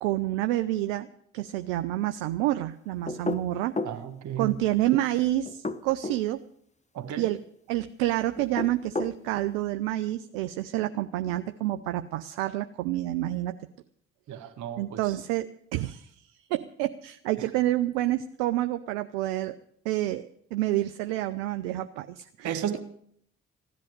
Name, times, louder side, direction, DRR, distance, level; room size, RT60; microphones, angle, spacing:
voice 1, 0.0-1.1 1.3-3.7 4.4-6.4 7.2-7.4 7.7-13.6 14.4-14.5 14.8-19.6 19.8-22.8, right 15 dB, 90° right, 9 dB, 0.5 m, -28 dB
sound 1, 3.1-4.0 5.5-6.2 8.4-9.2, left 3 dB, 25° left, 0.9 m, -32 dB
voice 2, 3.8-4.6 6.9-7.3 14.3-15.0 22.4-22.8, right 9 dB, 75° right, 8 dB, 1.7 m, -33 dB
15.5 x 10.5 x 6.6 m, 0.68 s
hypercardioid pair, 40°, 30 cm